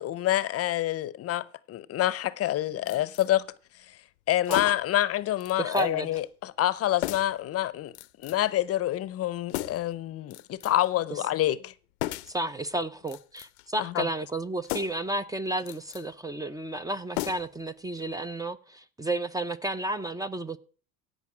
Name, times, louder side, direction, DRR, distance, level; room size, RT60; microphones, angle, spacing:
voice 1, 0.0-3.5 4.3-7.9 8.2-11.7 13.8-14.1, left 13 dB, 45° left, 0.7 m, -27 dB
sound 1, 2.9-3.3 4.4-5.0 5.4-5.9 6.1-6.3 7.0-7.4 7.9-8.5 9.5-9.9 10.3-10.9 12.0-12.4 13.0-13.7 14.6-15.1 15.6-16.1 17.1-17.7 18.0-18.1, left 18 dB, 90° left, 0.6 m, -36 dB
voice 2, 5.6-6.1 12.3-20.6, right 2 dB, 10° right, 0.6 m, -32 dB
16.5 x 5.5 x 6.0 m
supercardioid pair, 95°, 32 cm